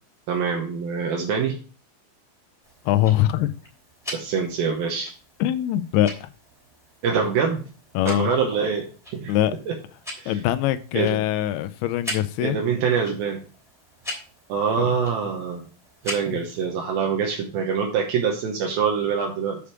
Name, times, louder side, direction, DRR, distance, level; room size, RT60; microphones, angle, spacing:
voice 1, 0.3-1.6 4.1-5.1 7.0-7.6 8.1-9.4 9.7-9.8 10.2-10.4 10.9-11.2 12.4-13.4 14.5-15.6 16.0-19.6, right 6 dB, 75° right, 1 dB, 2.8 m, -25 dB
Tick-tock, 2.6-16.6, left 1 dB, ahead, 2.4 m, -41 dB
voice 2, 2.9-3.5 5.4-6.3 8.0-8.3 9.3-9.5 10.3-12.6 14.8-14.9 16.3-16.4, left 13 dB, 90° left, 12 dB, 2.6 m, -23 dB
8.6 x 5.1 x 4.7 m, 0.38 s
omnidirectional pair, 4.5 m